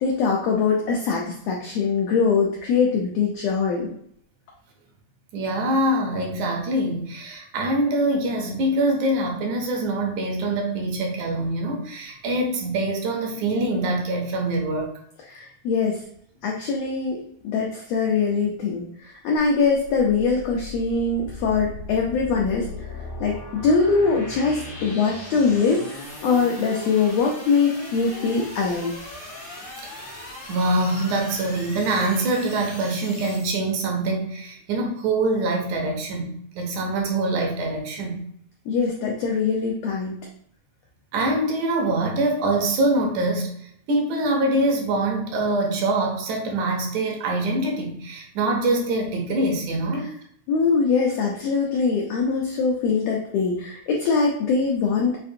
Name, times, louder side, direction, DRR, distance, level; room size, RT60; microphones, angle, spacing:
voice 1, 0.0-3.9 15.3-16.0 16.4-22.9 23.2-28.9 38.7-40.2 50.5-55.2, left 5 dB, 90° left, -1 dB, 1.4 m, -22 dB
voice 2, 5.3-14.9 30.0-30.1 30.5-38.2 41.1-50.1, right 2 dB, 75° right, 1 dB, 2.1 m, -24 dB
sound 1, 19.4-33.5, left 2 dB, 55° left, 0.6 m, -38 dB
6.7 x 2.5 x 2.7 m, 0.67 s
omnidirectional pair, 3.7 m